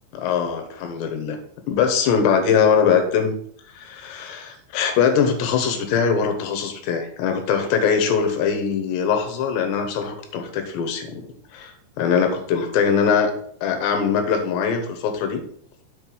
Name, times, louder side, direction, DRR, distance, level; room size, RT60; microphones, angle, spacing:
voice 1, 0.1-1.4 1.7-3.3 3.7-11.2 11.5-13.3 13.6-15.4, left 6 dB, 75° left, 5 dB, 3.2 m, -22 dB
7.6 x 4.5 x 6.2 m, 0.63 s
omnidirectional pair, 5.3 m